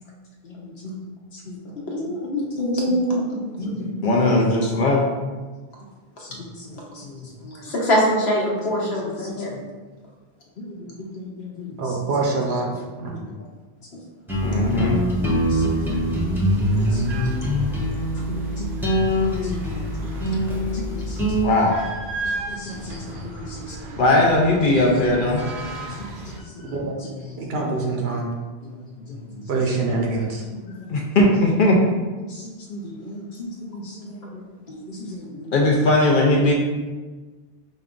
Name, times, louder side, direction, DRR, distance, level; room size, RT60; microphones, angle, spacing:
voice 1, 0.4-0.9 1.5-1.6 2.9-3.0 3.6-5.0 6.2-7.7 8.8-9.7 10.6-11.7 14.4-15.0 15.5-15.9 16.8-17.9 18.3-18.7 19.0-20.4 20.7-21.8 22.2-25.4 26.3-26.4 26.6-26.8 28.7-29.3 30.6-34.4 34.7-36.5, left 1 dB, 60° left, -1 dB, 0.7 m, -24 dB
voice 2, 1.9-3.4 3.7-3.9 7.6-9.5 22.9-23.0, equal, 80° left, -3 dB, 1.2 m, -23 dB
voice 3, 11.8-12.7 13.0-13.2 26.7-26.9 27.4-28.3 29.5-30.4, right 3 dB, 85° right, 0 dB, 1.0 m, -24 dB
sound 1, 14.3-21.5, equal, 5° right, 0.6 m, -23 dB
sound 2, 14.7-26.4, right 3 dB, 60° right, 0.7 m, -36 dB
5.2 x 2.3 x 3.7 m, 1.3 s
omnidirectional pair, 1.0 m